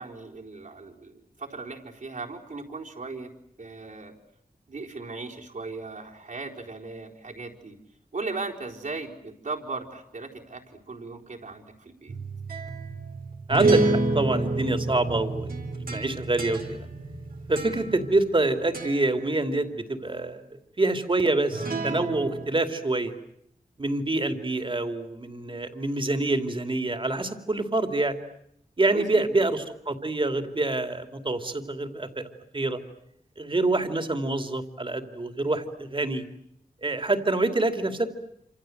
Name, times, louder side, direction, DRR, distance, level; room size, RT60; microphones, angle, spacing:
voice 1, 0.0-3.3 3.6-4.1 4.7-7.8 8.1-12.2 28.9-29.3, right 3 dB, 65° right, 0 dB, 4.3 m, -37 dB
sound 1, 12.1-18.4 18.7-19.1 21.5-22.5, right 2 dB, 85° right, 3.8 m, -28 dB
voice 2, 13.5-15.6 15.8-16.9 17.5-20.4 20.8-23.1 23.8-28.2 28.8-32.8 33.4-36.2 36.8-38.1, right 2 dB, 35° right, 7 dB, 2.7 m, -26 dB
27.5 x 27.0 x 7.9 m, 0.75 s
wide cardioid pair, 80°, 15 cm